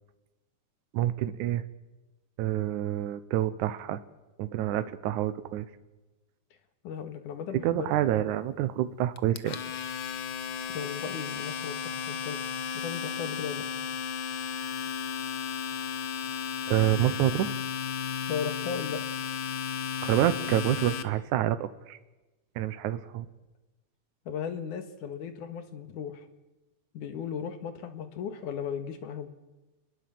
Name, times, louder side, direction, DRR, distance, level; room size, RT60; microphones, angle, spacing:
voice 1, 0.9-1.6 2.4-4.0 4.4-5.7 7.6-9.6 16.7-17.6 20.0-22.0 22.6-23.3, right 13 dB, 75° right, 12 dB, 2.3 m, -27 dB
voice 2, 6.8-7.9 10.7-12.4 12.7-13.7 18.3-19.0 24.3-26.3 26.9-29.3, left 7 dB, 80° left, 8 dB, 3.2 m, -36 dB
Domestic sounds home sounds, 9.2-21.0, left 7 dB, 65° left, 1.2 m, -34 dB
27.5 x 21.0 x 7.7 m, 1.1 s
omnidirectional pair, 3.5 m